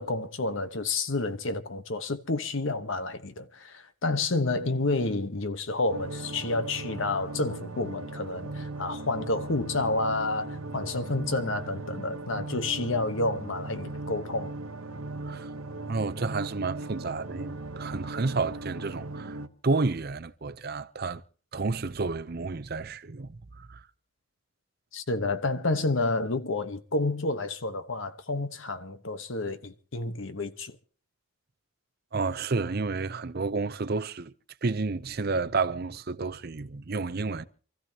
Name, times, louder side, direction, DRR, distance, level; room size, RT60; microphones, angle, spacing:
voice 1, 0.0-14.5 24.9-30.8, left 2 dB, 65° left, 1.1 m, -30 dB
sound 1, 5.9-19.5, right 2 dB, 85° right, 1.0 m, -38 dB
voice 2, 15.9-19.4 19.6-21.2 21.5-23.3 23.6-23.8 32.1-34.3 34.6-37.5, right 3 dB, 45° right, 0.6 m, -30 dB
27.5 x 14.5 x 2.9 m
head